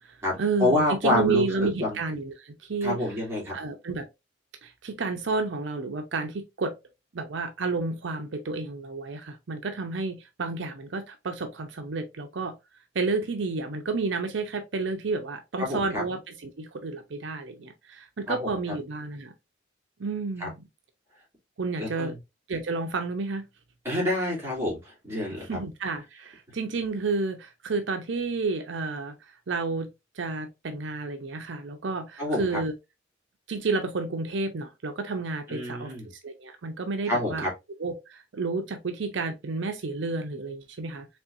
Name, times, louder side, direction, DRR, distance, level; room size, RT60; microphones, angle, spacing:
voice 1, 0.0-3.1 3.5-4.1 4.6-6.7 7.1-12.5 12.9-19.3 20.0-20.6 21.6-22.1 22.5-23.5 25.3-29.9 30.2-32.7 33.5-35.9 36.2-37.5 37.8-41.1, right 3 dB, 75° right, 0.6 m, -31 dB
voice 2, 0.6-2.0 2.8-3.5 15.6-16.0 18.3-18.5 20.4-20.5 21.8-22.2 23.8-25.6 32.2-32.4 35.5-36.1 37.1-37.5, left 1 dB, 15° right, 2.4 m, -27 dB
4.3 x 3.3 x 2.4 m
head